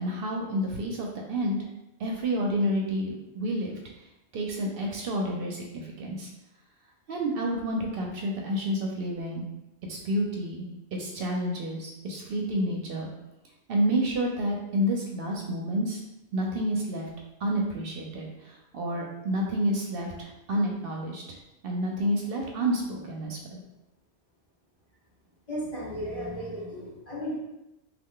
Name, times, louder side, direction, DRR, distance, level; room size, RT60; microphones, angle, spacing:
voice 1, 0.0-1.6 2.0-3.8 4.3-6.3 7.1-9.4 9.9-13.1 13.7-16.0 16.3-17.1 17.4-21.4 21.6-23.6, equal, 65° right, 0 dB, 0.7 m, -29 dB
voice 2, 25.5-27.3, equal, 35° left, -7 dB, 1.0 m, -34 dB
3.1 x 2.3 x 3.7 m, 0.93 s
omnidirectional pair, 1.1 m